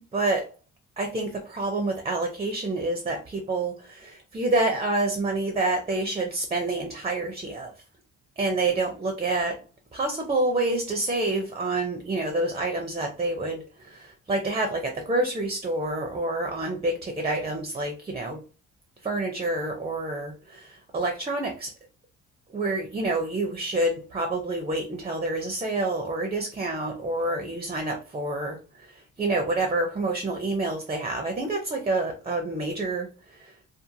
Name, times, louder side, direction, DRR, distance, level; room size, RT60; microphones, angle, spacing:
voice 1, 0.1-0.5 1.0-7.7 8.4-9.6 9.9-18.4 19.0-21.7 22.5-33.5, right 2 dB, 20° right, 0.5 m, -28 dB
2.5 x 2.4 x 2.7 m
cardioid pair, 90°, 30 cm